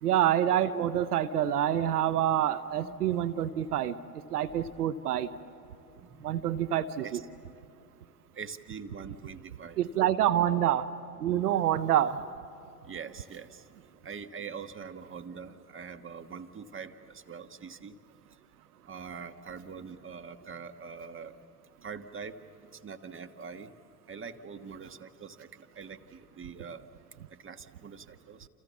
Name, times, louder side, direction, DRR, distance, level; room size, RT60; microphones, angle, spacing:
voice 1, 0.0-4.0 4.3-5.3 6.2-7.2 9.8-10.9 11.2-12.2, right 11 dB, 90° right, 14 dB, 0.8 m, -27 dB
voice 2, 2.7-3.2 6.0-6.5 7.0-7.2 8.3-9.8 12.8-13.7 14.0-18.0 18.8-21.4 21.8-22.4 22.7-23.7 24.1-26.9 27.3-28.5, right 6 dB, 25° right, 9 dB, 1.5 m, -44 dB
29.5 x 28.0 x 7.2 m, 2.9 s
hypercardioid pair, 70°, 44 cm